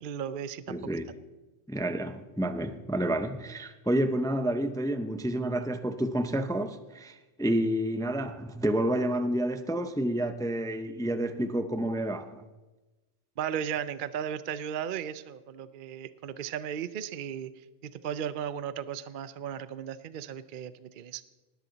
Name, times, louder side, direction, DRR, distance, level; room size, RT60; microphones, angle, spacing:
voice 1, 0.0-0.8 13.4-17.5 17.8-21.2, right 9 dB, 55° right, 0.6 m, -35 dB
voice 2, 0.7-1.1 1.7-12.4, right 1 dB, 5° left, 0.3 m, -29 dB
19.0 x 13.0 x 4.0 m
omnidirectional pair, 1.3 m